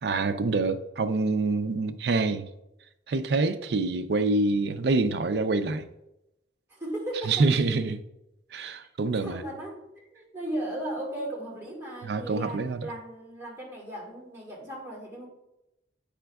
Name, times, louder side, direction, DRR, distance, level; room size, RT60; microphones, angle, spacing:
voice 1, 0.0-2.5 3.1-5.9 7.3-8.0 8.5-9.4 12.0-12.8, right 3 dB, 65° right, 0.4 m, -26 dB
voice 2, 6.7-7.5 9.2-15.3, right 1 dB, 15° right, 1.8 m, -36 dB
8.7 x 5.0 x 2.3 m
head